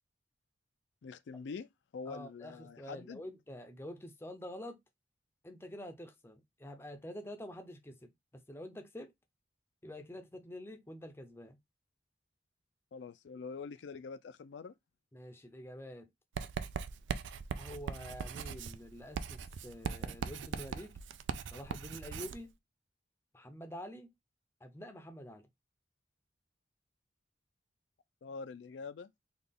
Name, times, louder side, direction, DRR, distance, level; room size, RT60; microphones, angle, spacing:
voice 1, 1.0-3.2 12.9-14.7 28.2-29.1, left 5 dB, 80° left, 0.4 m, -45 dB
voice 2, 2.1-4.8 5.4-8.0 8.3-9.1 9.8-11.6 15.1-16.1 17.6-21.0 21.5-22.5 23.3-24.1 24.6-25.5, left 1 dB, 15° left, 0.5 m, -47 dB
Writing, 16.4-22.4, right 6 dB, 85° right, 0.4 m, -40 dB
4.0 x 2.4 x 3.4 m
head